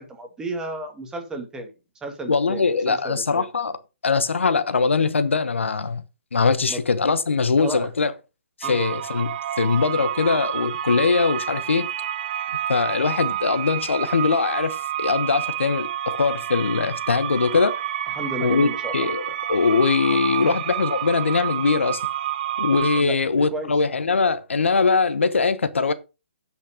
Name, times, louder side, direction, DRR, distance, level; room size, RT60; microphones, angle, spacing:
voice 1, 0.0-1.7 2.0-3.5 6.7-6.8 7.6-7.9 8.6-8.8 18.2-19.1 20.4-20.5 23.0-23.7, right 2 dB, 10° right, 2.1 m, -33 dB
voice 2, 2.3-3.8 4.0-6.0 6.3-8.1 8.6-11.9 12.7-17.8 18.4-22.0 22.6-25.9, left 4 dB, 85° left, 1.2 m, -22 dB
sound 1, 8.6-23.0, right 11 dB, 45° right, 0.6 m, -29 dB
10.0 x 5.7 x 5.1 m
hypercardioid pair, 140°, 6 cm